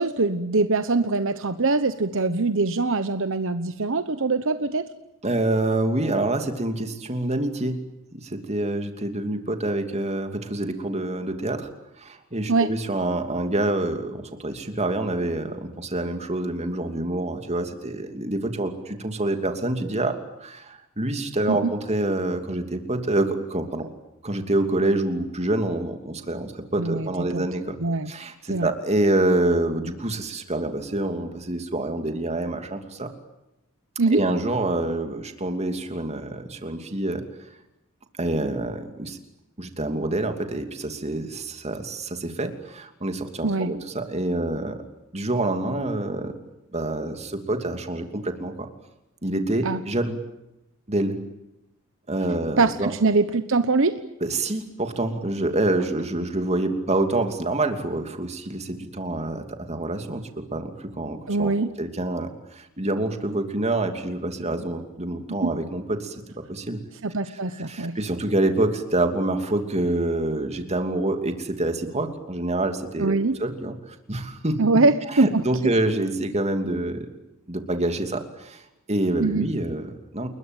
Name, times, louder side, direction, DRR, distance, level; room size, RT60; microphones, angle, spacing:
voice 1, 0.0-4.8 12.5-12.7 21.5-21.7 26.8-27.5 27.8-28.1 28.5-28.7 34.0-34.2 43.4-43.7 49.6-49.8 52.6-54.0 61.3-61.7 65.4-65.5 67.0-68.0 73.0-73.4 74.6-75.7 79.2-79.5, right 3 dB, 60° right, 11 dB, 1.1 m, -23 dB
voice 2, 5.2-7.8 8.1-11.7 12.0-23.9 24.2-27.8 28.1-33.1 34.1-37.2 38.2-39.2 39.6-44.8 45.1-46.3 46.7-48.7 49.2-50.2 50.9-51.2 52.1-52.9 54.2-61.5 61.8-66.2 66.5-66.8 67.3-74.6 75.1-77.1 77.5-78.6 78.9-80.3, right 2 dB, 30° right, 6 dB, 2.8 m, -27 dB
29.5 x 21.5 x 9.1 m, 0.92 s
head